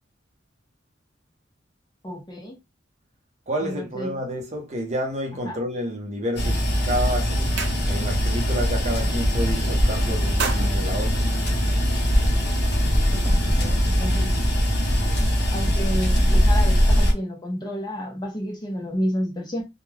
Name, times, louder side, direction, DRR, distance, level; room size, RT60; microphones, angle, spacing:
voice 1, 2.0-2.6 3.6-4.1 5.4-5.6 13.3-14.3 15.5-19.6, equal, 20° left, 0.6 m, -30 dB
voice 2, 3.5-7.6 7.9-11.3, equal, 35° right, 0.7 m, -29 dB
sound 1, 6.4-17.1, equal, 55° left, 0.8 m, -21 dB
sound 2, 7.0-17.0, right 2 dB, 5° right, 1.3 m, -47 dB
sound 3, 7.4-8.3 8.6-8.9 9.2-9.8 10.1-12.0, right 6 dB, 70° right, 0.5 m, -34 dB
2.2 x 2.2 x 3.1 m
head